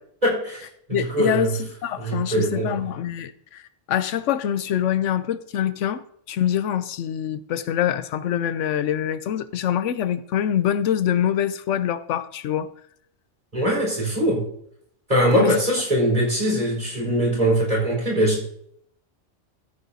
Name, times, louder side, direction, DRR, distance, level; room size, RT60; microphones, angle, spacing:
voice 1, 0.2-1.5 2.0-2.8 13.5-14.4 15.1-18.4, right 1 dB, 35° right, 4.6 m, -22 dB
voice 2, 0.9-3.6 3.9-12.7 15.4-15.6, left 10 dB, 80° left, 0.9 m, -25 dB
14.5 x 8.7 x 2.7 m
omnidirectional pair, 1.3 m